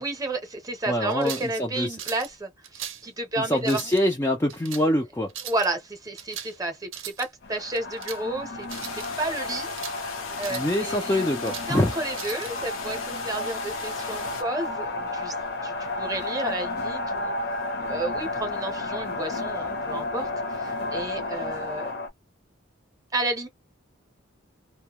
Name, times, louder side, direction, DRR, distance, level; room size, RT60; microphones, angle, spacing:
voice 1, 0.0-3.8 5.5-9.7 10.4-11.2 11.7-15.3 15.6-17.3 17.8-21.9 23.1-23.5, right 2 dB, 15° right, 0.7 m, -32 dB
voice 2, 0.9-2.0 3.4-5.3 10.5-11.9, left 1 dB, 15° left, 0.3 m, -25 dB
sound 1, 1.1-1.5 2.0-2.3 2.6-3.1 3.6-4.0 4.5-4.9 5.3-5.7 6.2-6.6 6.8-7.3 7.7-8.2 8.6-9.1 9.5-10.0 10.4-10.8 11.2-11.7 12.1-12.5, right 10 dB, 70° right, 0.6 m, -38 dB
sound 2, 7.4-22.1, left 2 dB, 50° left, 0.6 m, -32 dB
sound 3, 8.7-14.4, left 6 dB, 90° left, 0.8 m, -39 dB
2.1 x 2.1 x 2.9 m
head